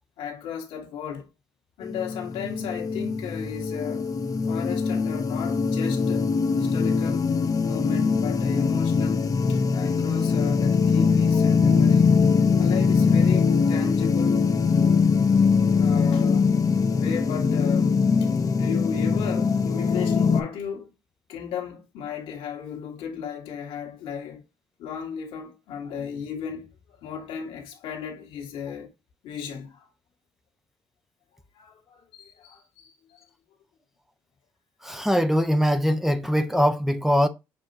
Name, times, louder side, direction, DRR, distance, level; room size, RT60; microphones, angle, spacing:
voice 1, 0.2-1.3 1.8-4.1 4.5-6.3 6.5-7.3 7.6-9.2 9.5-12.2 12.6-14.4 15.8-16.5 16.9-20.9 21.3-24.5 24.8-28.9 29.2-29.9 31.5-33.3, left 7 dB, 85° left, 1.7 m, -35 dB
sound 1, 1.8-20.4, left 5 dB, 40° left, 0.7 m, -22 dB
voice 2, 34.8-37.3, equal, 5° right, 0.7 m, -22 dB
6.7 x 2.9 x 2.6 m
supercardioid pair, 65°, 9 cm